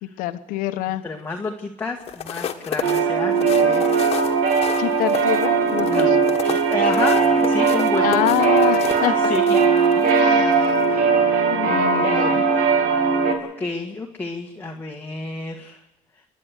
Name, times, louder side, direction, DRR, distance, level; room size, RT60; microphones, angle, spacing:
voice 1, 0.0-1.0 4.8-6.2 8.0-9.3 10.1-10.8 11.5-12.4, left 15 dB, 90° left, 10 dB, 1.3 m, -26 dB
voice 2, 1.0-4.1 5.8-8.2 9.0-9.6 10.0-10.3 10.9-12.4 13.0-13.1 13.6-15.8, left 3 dB, 15° left, 1 dB, 1.7 m, -31 dB
sound 1, 2.0-10.2 10.6-10.8, left 9 dB, 45° left, 1.7 m, -33 dB
sound 2, 2.8-13.3, right 5 dB, 80° right, 3.1 m, -19 dB
28.5 x 11.0 x 8.3 m, 0.90 s
cardioid pair, 135°, 14 cm